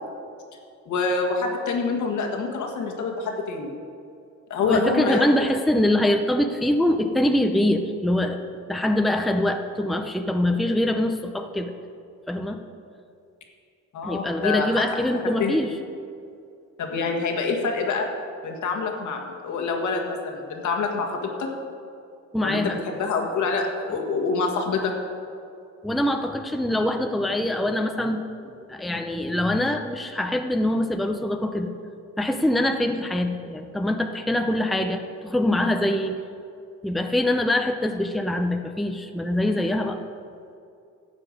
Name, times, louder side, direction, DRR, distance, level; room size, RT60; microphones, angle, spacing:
voice 1, 0.9-3.7 4.5-5.2 13.9-15.0 15.4-15.6 16.8-18.1 18.4-21.5 22.4-24.9, left 4 dB, 75° left, 2 dB, 1.7 m, -26 dB
voice 2, 4.6-8.4 8.7-11.7 12.3-12.6 14.0-15.7 22.3-22.8 25.8-31.7 32.2-36.2 36.8-40.0, left 1 dB, ahead, 5 dB, 0.6 m, -24 dB
12.0 x 7.6 x 5.1 m, 2.5 s
cardioid pair, 90°, 30 cm